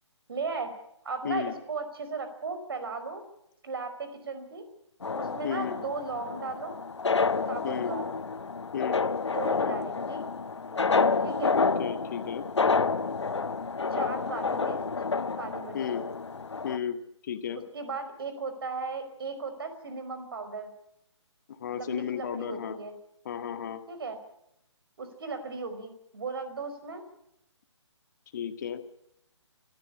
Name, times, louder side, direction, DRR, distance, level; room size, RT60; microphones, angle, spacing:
voice 1, 0.3-0.7 1.0-3.2 3.6-4.7 5.1-6.7 7.5-8.1 9.2-10.2 11.2-11.6 13.9-14.8 15.4-15.8 17.5-20.7 21.7-22.9 23.9-24.2 25.0-27.0, right 4 dB, 50° right, 9 dB, 5.0 m, -36 dB
sound 1, 5.0-16.8, left 4 dB, 65° left, 1.1 m, -29 dB
voice 2, 5.4-5.8 7.6-7.9 8.7-9.0 11.6-12.5 15.7-16.0 16.6-17.0 17.2-17.6 21.5-22.8 23.3-23.8 28.3-28.8, left 8 dB, 35° left, 8 dB, 1.8 m, -33 dB
26.0 x 14.0 x 9.9 m, 0.81 s
figure-of-eight pair, 140°, 16 cm